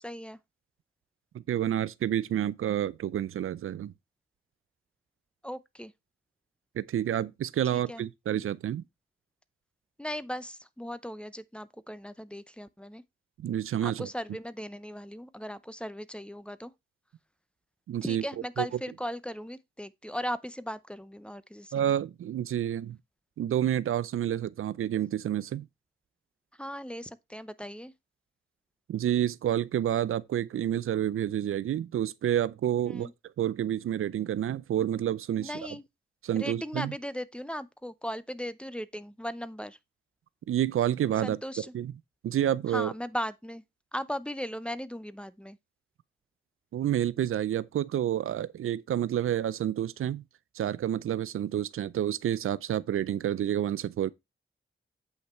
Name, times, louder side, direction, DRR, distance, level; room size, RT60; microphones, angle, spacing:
voice 1, 0.0-0.4 5.4-5.9 7.7-8.0 10.0-13.0 13.8-16.7 18.0-21.9 26.6-27.9 32.8-33.1 35.4-35.8 36.4-39.8 41.2-41.7 42.7-43.6 43.9-45.6, equal, 5° left, 0.6 m, -37 dB
voice 2, 1.5-3.9 6.8-8.8 13.4-14.1 17.9-18.2 18.6-18.7 21.7-23.0 23.4-25.7 28.9-33.1 33.4-35.5 36.2-36.9 40.5-41.4 41.7-41.9 42.2-42.9 46.7-50.2 50.6-54.1, right 11 dB, 85° right, 0.5 m, -29 dB
8.0 x 5.6 x 4.2 m
cardioid pair, 85°, 21 cm